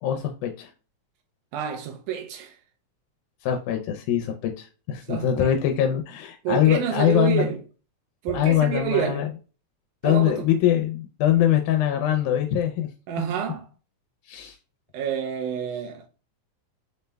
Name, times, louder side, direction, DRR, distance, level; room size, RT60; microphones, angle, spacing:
voice 1, 0.0-0.7 3.4-7.5 8.3-9.3 10.0-12.9 14.3-14.6, left 11 dB, 85° left, 2.0 m, -23 dB
voice 2, 1.5-2.6 5.1-5.6 6.4-7.6 8.2-9.3 10.0-10.5 13.1-13.7 14.9-16.1, right 8 dB, 85° right, 2.1 m, -28 dB
5.4 x 2.1 x 3.3 m
omnidirectional pair, 3.5 m